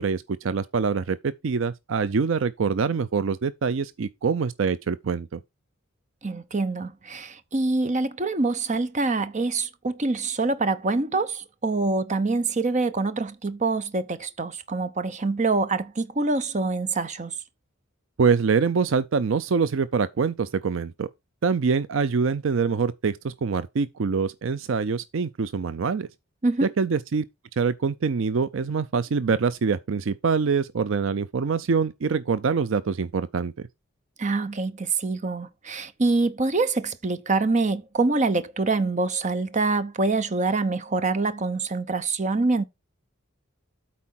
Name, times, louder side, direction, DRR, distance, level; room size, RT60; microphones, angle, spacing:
voice 1, 0.0-5.4 18.2-21.1 21.4-26.1 26.6-27.2 27.6-33.5, right 5 dB, 60° right, 0.5 m, -25 dB
voice 2, 6.2-17.3 26.4-26.7 34.2-42.6, right 3 dB, 35° right, 0.8 m, -25 dB
8.5 x 4.4 x 5.8 m
head